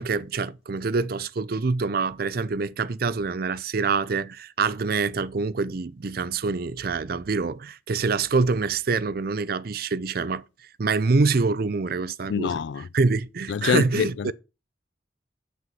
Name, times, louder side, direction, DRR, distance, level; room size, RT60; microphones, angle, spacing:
voice 1, 0.0-12.6 12.9-14.3, right 4 dB, 55° right, 0.5 m, -25 dB
voice 2, 12.3-12.9 13.5-14.3, left 6 dB, 75° left, 0.3 m, -25 dB
7.6 x 6.1 x 5.5 m
head